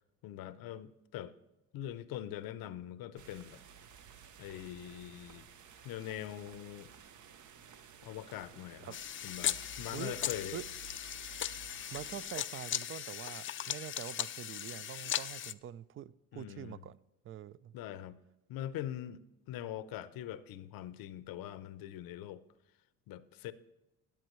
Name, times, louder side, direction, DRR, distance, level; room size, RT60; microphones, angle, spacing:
voice 1, 0.2-1.3 1.7-3.6 4.4-5.5 5.8-6.9 8.0-9.0 9.2-10.6 16.3-16.8 17.7-18.2 18.5-19.2 19.5-22.4 23.1-23.5, left 12 dB, 80° left, 0.7 m, -43 dB
sound 1, 3.2-12.3, right 7 dB, 55° right, 0.8 m, -54 dB
sound 2, 8.9-15.5, left 11 dB, 35° left, 0.4 m, -38 dB
voice 2, 11.9-17.0 17.2-17.7, right 11 dB, 40° right, 0.4 m, -45 dB
13.0 x 9.1 x 3.1 m
cardioid pair, 90°, 34 cm